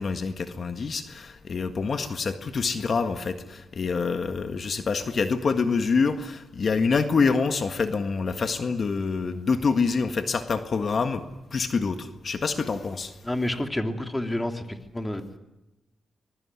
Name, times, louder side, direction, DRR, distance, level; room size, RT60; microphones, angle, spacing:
voice 1, 0.0-11.2 11.5-13.1, left 4 dB, 50° left, 8 dB, 1.7 m, -26 dB
voice 2, 13.2-15.4, left 1 dB, 15° left, 6 dB, 2.8 m, -29 dB
25.0 x 21.5 x 9.7 m, 0.99 s
cardioid pair, 80°, 0 cm